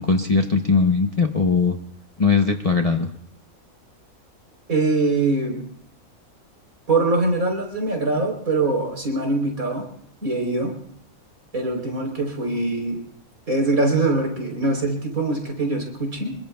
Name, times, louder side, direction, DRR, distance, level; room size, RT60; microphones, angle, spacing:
voice 1, 0.0-1.7 2.2-3.1, left 4 dB, 35° left, 4 dB, 0.7 m, -19 dB
voice 2, 4.7-5.6 6.9-9.8 10.2-10.7 11.5-13.0 13.5-16.4, right 2 dB, 75° right, 2 dB, 4.2 m, -23 dB
26.0 x 22.0 x 2.3 m, 0.68 s
omnidirectional pair, 1.5 m